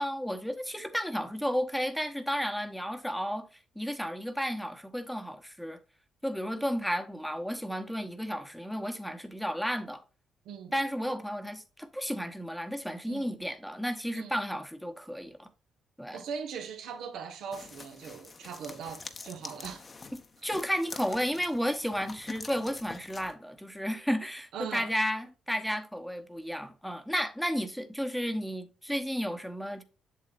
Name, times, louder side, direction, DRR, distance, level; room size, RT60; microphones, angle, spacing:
voice 1, 0.0-3.4 3.7-5.8 6.2-10.0 10.7-15.5 16.0-16.2 20.4-29.8, equal, ahead, 1.1 m, -33 dB
voice 2, 16.1-19.8 24.5-24.9, right 6 dB, 80° right, 1.5 m, -40 dB
sound 1, 17.5-23.3, left 4 dB, 35° left, 1.0 m, -46 dB
7.6 x 7.3 x 2.5 m
cardioid pair, 90°, 0 cm